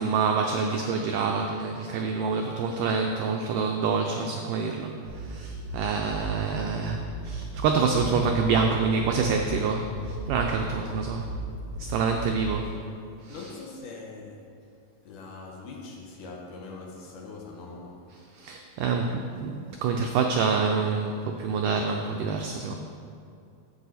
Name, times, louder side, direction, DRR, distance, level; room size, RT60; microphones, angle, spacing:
voice 1, 0.0-11.3 11.8-12.7 13.2-13.4 18.3-22.8, right 5 dB, 90° right, 3 dB, 1.8 m, -27 dB
sound 1, 5.0-12.4, right 1 dB, 50° left, 2.8 m, -36 dB
voice 2, 13.3-14.5 15.1-18.1, left 3 dB, 70° left, -1 dB, 2.2 m, -42 dB
11.0 x 7.7 x 4.1 m, 2.5 s
omnidirectional pair, 4.4 m